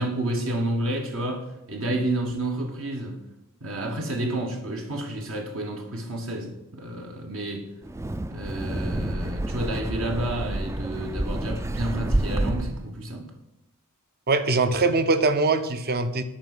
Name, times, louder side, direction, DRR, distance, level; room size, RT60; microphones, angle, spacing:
voice 1, 0.0-3.2 3.6-7.7 8.3-13.3, right 1 dB, 65° right, 1.6 m, -30 dB
Wind, 7.8-12.9, right 1 dB, 15° right, 0.3 m, -28 dB
voice 2, 14.3-16.2, right 3 dB, 45° right, 0.8 m, -22 dB
8.8 x 5.5 x 7.8 m
head